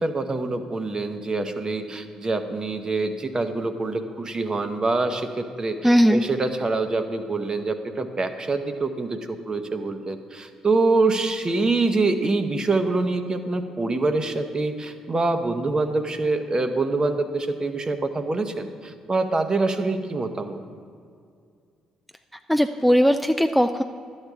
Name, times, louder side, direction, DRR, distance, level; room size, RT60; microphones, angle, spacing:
voice 1, 0.0-20.6, right 3 dB, 35° right, 7 dB, 0.8 m, -25 dB
voice 2, 5.8-6.2 22.5-23.8, equal, ahead, 7 dB, 0.4 m, -18 dB
11.5 x 8.1 x 3.6 m, 2.3 s
hypercardioid pair, 50°, 2 cm